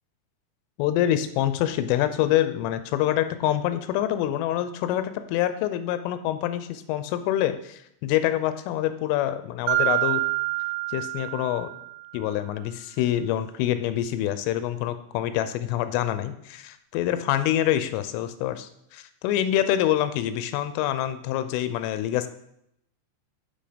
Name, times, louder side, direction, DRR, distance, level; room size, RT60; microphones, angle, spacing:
voice 1, 0.8-10.2 10.9-11.7 12.1-22.3, left 12 dB, 85° left, 11 dB, 3.2 m, -26 dB
Mallet percussion, 9.7-12.2, right 18 dB, 80° right, 3.1 m, -27 dB
8.5 x 7.7 x 5.1 m, 0.76 s
omnidirectional pair, 5.7 m